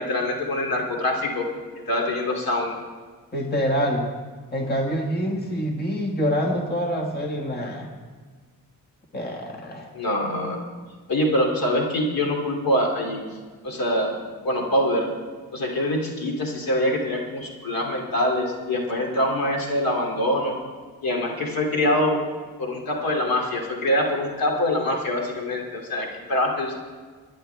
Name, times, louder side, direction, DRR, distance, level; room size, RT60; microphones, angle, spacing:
voice 1, 0.0-1.5 1.9-2.8 9.9-10.6 11.1-13.2 13.6-14.2 14.4-15.1 15.5-20.6 21.0-22.2 22.6-26.8, left 1 dB, 70° left, 1 dB, 2.7 m, -24 dB
voice 2, 3.3-4.1 4.5-7.9 9.1-9.9, equal, 25° left, 1 dB, 1.6 m, -26 dB
24.0 x 10.5 x 3.4 m, 1.5 s
wide cardioid pair, 135°, 36 cm